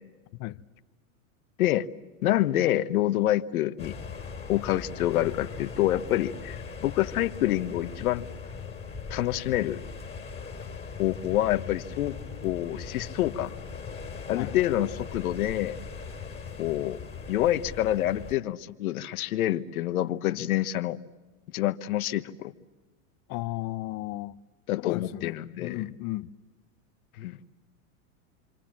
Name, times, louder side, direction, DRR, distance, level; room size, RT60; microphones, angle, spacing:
voice 1, 2.2-3.9 4.5-8.2 9.1-9.8 11.0-12.2 12.4-13.5 14.3-15.8 16.6-17.0 17.3-21.0 21.5-22.5 24.7-25.8 27.2-27.4, left 14 dB, 80° left, 1.2 m, -27 dB
sound 1, 3.8-18.4, left 5 dB, 15° left, 3.1 m, -40 dB
voice 2, 23.3-24.4 24.8-26.3, left 18 dB, 40° left, 0.9 m, -34 dB
28.5 x 26.0 x 7.4 m
supercardioid pair, 130°, 42 cm